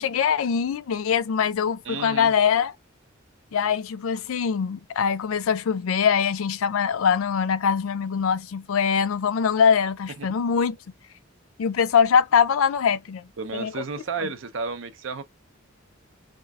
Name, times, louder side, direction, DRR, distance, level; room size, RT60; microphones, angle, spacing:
voice 1, 0.0-2.7 3.5-10.8 11.6-13.3 13.5-13.7 14.2-14.3, left 7 dB, 80° left, 0.4 m, -23 dB
voice 2, 1.8-2.3 10.2-10.3 13.4-15.2, right 4 dB, 65° right, 0.6 m, -32 dB
4.3 x 2.4 x 2.3 m
head